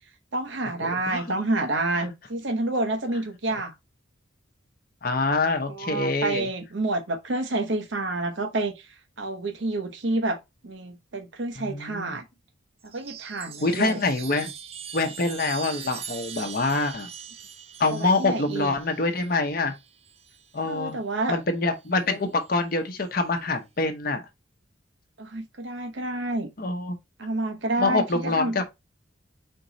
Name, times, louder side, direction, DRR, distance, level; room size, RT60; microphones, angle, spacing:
voice 1, 0.3-3.7 5.4-8.8 9.2-10.4 10.6-12.2 12.9-14.0 17.9-18.7 20.6-21.4 25.2-26.5 27.2-28.6, right 2 dB, 70° right, 0.9 m, -29 dB
voice 2, 5.0-6.5 11.6-12.2 13.6-14.5 14.9-17.1 17.8-19.7 20.5-21.0 21.3-24.2 26.6-27.0 27.8-28.6, left 3 dB, 45° left, 0.8 m, -25 dB
Chime, 12.8-20.6 21.9-22.5, right 7 dB, 30° right, 0.4 m, -42 dB
4.4 x 3.0 x 3.9 m
head